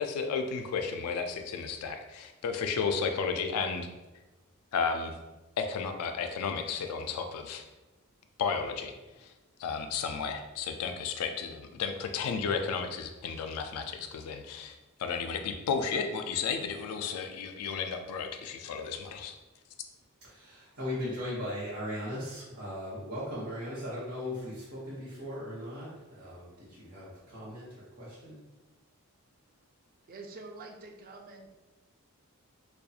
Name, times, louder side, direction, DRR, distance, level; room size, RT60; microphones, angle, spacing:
voice 1, 0.0-3.9 4.7-5.2 5.6-7.6 8.4-8.9 9.2-9.3 9.6-19.3, left 5 dB, 75° left, 5 dB, 0.3 m, -33 dB
voice 2, 20.2-28.4, left 1 dB, 80° right, -10 dB, 0.9 m, -38 dB
voice 3, 30.1-31.5, right 3 dB, 40° right, 3 dB, 0.3 m, -46 dB
2.4 x 2.2 x 2.6 m, 1.1 s
head